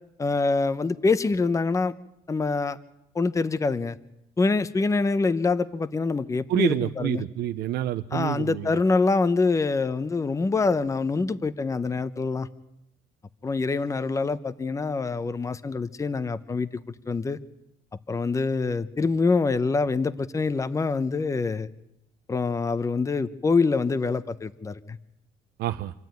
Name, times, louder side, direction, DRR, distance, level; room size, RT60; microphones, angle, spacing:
voice 1, 0.2-1.9 2.3-2.8 3.1-4.0 4.4-7.2 8.1-12.5 13.4-16.7 17.1-17.4 18.1-21.7 22.3-25.0, left 4 dB, 20° left, 0.8 m, -25 dB
voice 2, 6.5-8.7 25.6-25.9, right 12 dB, 75° right, 0.8 m, -27 dB
26.5 x 12.5 x 9.4 m
cardioid pair, 110°, 17 cm